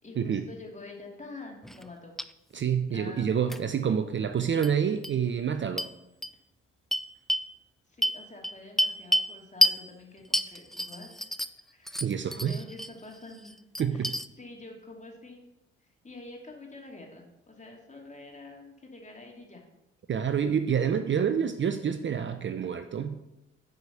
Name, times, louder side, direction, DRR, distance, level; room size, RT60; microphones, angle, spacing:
voice 1, 0.0-2.2 2.9-3.4 7.9-11.3 11.7-12.1 12.3-13.6 13.9-14.1 14.4-15.4 15.8-19.6 20.5-21.4, left 2 dB, 25° left, 0 dB, 2.9 m, -47 dB
sound 1, 1.6-1.9 2.2-2.3 3.5-3.6 4.6-4.7 5.0-5.1 5.8-5.9 6.2-6.3 6.9-7.5 8.0-9.3 9.6-9.8 10.3-11.6 11.9-12.9 13.3-14.3, equal, ahead, 0.4 m, -28 dB
voice 2, 2.5-5.9 12.0-12.6 13.8-14.1 20.1-23.2, right 7 dB, 40° right, 10 dB, 0.6 m, -28 dB
8.0 x 5.0 x 6.9 m, 0.92 s
hypercardioid pair, 55°, 31 cm